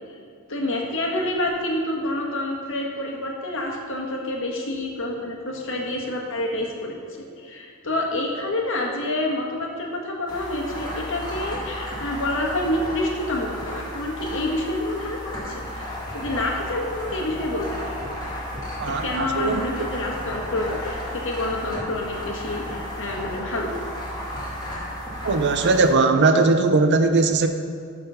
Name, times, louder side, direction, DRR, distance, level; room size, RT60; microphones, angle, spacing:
voice 1, 0.5-7.0 7.4-15.8 16.1-17.9 18.9-23.7, left 1 dB, 65° left, -1 dB, 1.5 m, -28 dB
sound 1, 10.3-25.9, equal, 20° left, 2.2 m, -33 dB
voice 2, 18.8-19.6 25.2-27.5, right 3 dB, 55° right, 7 dB, 0.7 m, -19 dB
12.0 x 4.2 x 5.6 m, 2.4 s
head